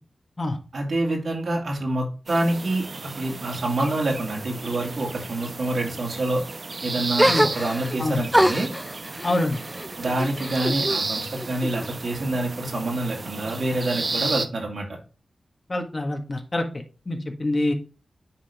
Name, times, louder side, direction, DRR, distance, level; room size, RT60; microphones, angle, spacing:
voice 1, 0.7-6.4 6.8-8.7 10.0-14.8, right 2 dB, 75° right, -1 dB, 2.5 m, -27 dB
sound 1, 2.3-14.5, right 3 dB, 55° right, 0.7 m, -33 dB
sound 2, 7.2-8.0 8.3-11.0 11.4-12.2, equal, 5° right, 0.4 m, -25 dB
voice 2, 9.2-9.6 15.7-16.6 17.1-17.7, left 2 dB, 40° left, 4 dB, 1.6 m, -25 dB
9.8 x 3.8 x 3.5 m, 0.34 s
cardioid pair, 50°, 0 cm